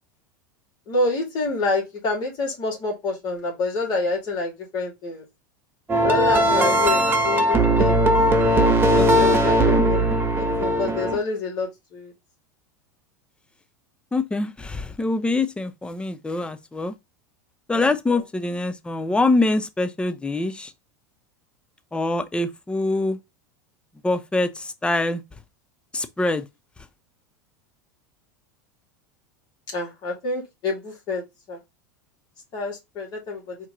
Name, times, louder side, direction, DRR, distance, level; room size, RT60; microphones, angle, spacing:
voice 1, 0.9-5.2 6.0-8.0 9.2-10.1 10.4-12.1 17.7-17.9 29.7-31.2 31.5-31.6 32.5-33.4, left 3 dB, 45° left, 2.6 m, -27 dB
sound 1, 5.9-11.2, right 1 dB, 20° right, 1.2 m, -19 dB
voice 2, 6.5-7.1 9.0-9.6 14.1-16.9 17.7-20.7 21.9-23.2 24.0-25.2 25.9-26.4, left 2 dB, 10° left, 0.7 m, -25 dB
4.4 x 3.0 x 3.8 m
hypercardioid pair, 90°, 10 cm